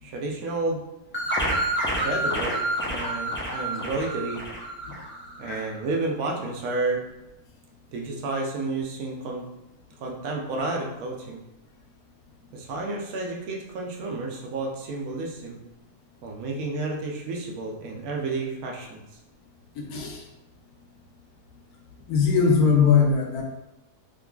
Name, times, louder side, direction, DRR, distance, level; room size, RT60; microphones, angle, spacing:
voice 1, 0.0-0.8 2.0-4.4 5.4-7.0 7.9-9.5 10.0-11.4 12.5-15.6 16.2-19.0, right 3 dB, 70° right, 0 dB, 0.9 m, -31 dB
sound 1, 1.1-5.5, right 1 dB, 20° left, 0.3 m, -28 dB
voice 2, 19.8-20.2 22.1-23.4, left 6 dB, 75° left, 0 dB, 1.1 m, -21 dB
3.7 x 3.0 x 2.3 m, 0.90 s
omnidirectional pair, 1.7 m